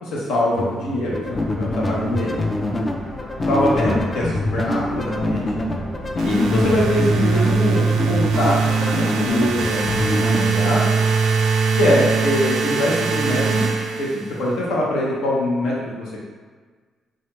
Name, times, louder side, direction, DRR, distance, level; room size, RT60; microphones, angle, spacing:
voice 1, 0.0-2.4 3.5-5.6 6.2-11.0 11.8-13.7 14.0-16.3, left 1 dB, 80° left, -4 dB, 0.8 m, -23 dB
sound 1, 0.6-10.5, left 1 dB, 25° left, 0.3 m, -25 dB
sound 2, 1.3-7.6, equal, 40° left, 0.9 m, -36 dB
sound 3, 6.2-14.5, right 5 dB, 90° right, 0.3 m, -21 dB
3.1 x 2.4 x 2.9 m, 1.5 s
cardioid pair, 90°, 0 cm